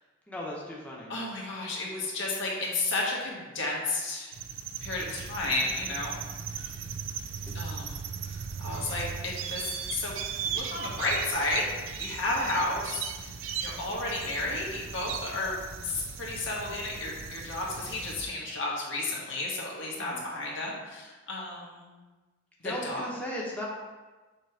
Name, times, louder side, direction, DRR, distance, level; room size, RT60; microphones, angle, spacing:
voice 1, 0.3-1.1 19.9-20.2 22.6-23.7, left 1 dB, 10° left, -5 dB, 0.9 m, -37 dB
voice 2, 1.1-4.3 4.8-6.2 7.5-10.1 10.4-11.7 12.0-13.3 13.6-21.9 22.6-23.0, left 2 dB, 70° left, -3 dB, 1.4 m, -32 dB
sound 1, 4.3-18.3, right 6 dB, 85° right, 0.5 m, -38 dB
6.6 x 3.0 x 4.9 m, 1.2 s
head